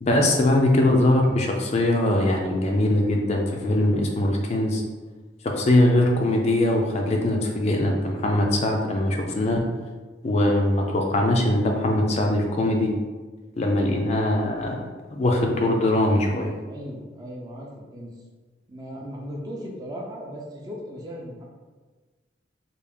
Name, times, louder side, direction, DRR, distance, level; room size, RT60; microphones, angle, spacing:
voice 1, 0.0-4.8 5.4-9.6 10.2-12.9 13.6-16.5, left 1 dB, 35° left, 1 dB, 0.3 m, -21 dB
voice 2, 16.6-18.1 18.7-21.4, equal, 20° right, -2 dB, 0.5 m, -37 dB
3.4 x 2.4 x 3.5 m, 1.3 s
head